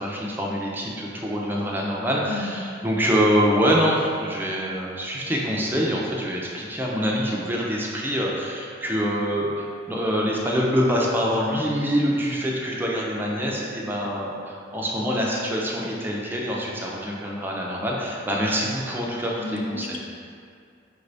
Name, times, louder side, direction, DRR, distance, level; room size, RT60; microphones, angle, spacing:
voice 1, 0.0-20.0, equal, 10° right, -3 dB, 0.5 m, -25 dB
voice 2, 2.3-2.6 19.4-20.0, left 2 dB, 85° left, 1 dB, 0.5 m, -32 dB
5.2 x 2.6 x 3.3 m, 2.3 s
head